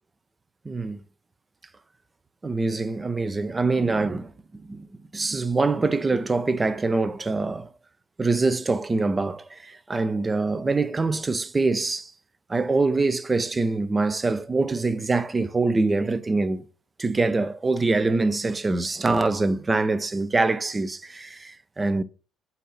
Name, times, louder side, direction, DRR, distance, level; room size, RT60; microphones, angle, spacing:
voice 1, 0.6-1.0 2.4-4.3 4.7-4.9 5.1-7.7 8.2-12.1 12.5-16.6 17.0-22.0, right 3 dB, 25° right, 0.7 m, -24 dB
8.1 x 2.8 x 5.9 m
hypercardioid pair, 60°, 0 cm